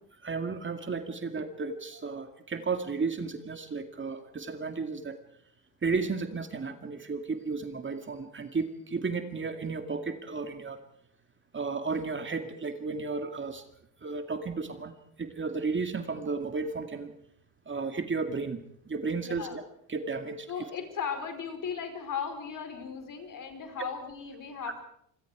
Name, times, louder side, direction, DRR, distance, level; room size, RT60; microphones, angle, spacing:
voice 1, 0.2-5.2 5.8-10.8 11.5-13.6 14.0-14.9 15.2-17.1 17.7-19.6 19.9-20.5, right 4 dB, 25° right, 7 dB, 2.2 m, -33 dB
voice 2, 19.2-19.6 20.5-24.9, left 6 dB, 45° left, 7 dB, 4.7 m, -37 dB
27.5 x 21.5 x 4.9 m, 0.71 s
supercardioid pair, 75°, 44 cm